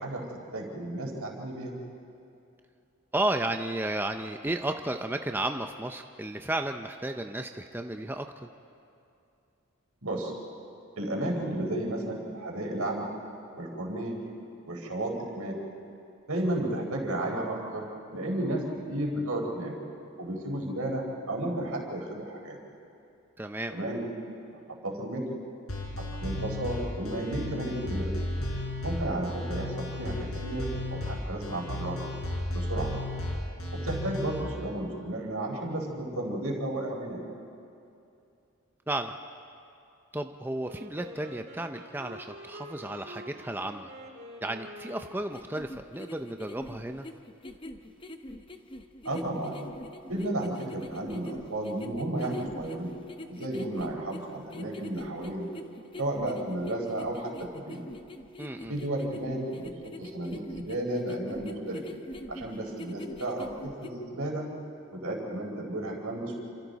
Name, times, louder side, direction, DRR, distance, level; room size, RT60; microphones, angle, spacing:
voice 1, 0.0-1.8 10.0-10.3 11.0-13.1 13.6-14.2 14.7-15.6 16.3-19.7 20.2-22.6 23.7-24.1 24.8-25.3 26.0-28.1 28.8-32.0 32.5-32.9 33.7-37.2 49.0-49.6 50.1-53.0 53.3-55.5 56.0-57.8 58.7-59.7 60.0-61.8 62.3-64.5 64.9-66.4, right 1 dB, 85° right, 0 dB, 4.4 m, -33 dB
voice 2, 3.1-8.5 23.4-23.7 38.9-39.1 40.1-43.9 44.4-47.1 58.4-58.8, right 1 dB, 10° right, 6 dB, 0.5 m, -33 dB
sound 1, 25.7-34.4, left 1 dB, 80° left, 4.4 m, -34 dB
Wind instrument woodwind instrument, 40.6-45.8, equal, 50° right, 2.0 m, -47 dB
sound 2, 45.3-63.9, left 1 dB, 20° left, 0.8 m, -44 dB
29.0 x 27.0 x 4.1 m, 2.6 s
head